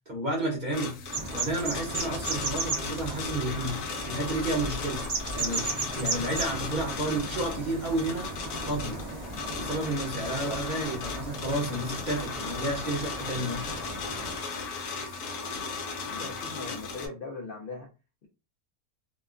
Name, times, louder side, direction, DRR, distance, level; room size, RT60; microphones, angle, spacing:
voice 1, 0.1-1.0 1.3-8.3 8.7-9.0 9.5-13.7, right 1 dB, 40° right, 0.7 m, -31 dB
sound 1, 0.7-17.1, left 4 dB, 90° left, 1.2 m, -36 dB
sound 2, 1.1-14.4, right 2 dB, 85° right, 0.3 m, -36 dB
voice 2, 16.0-17.9, left 3 dB, 65° left, 0.5 m, -39 dB
2.9 x 2.2 x 2.4 m
omnidirectional pair, 1.6 m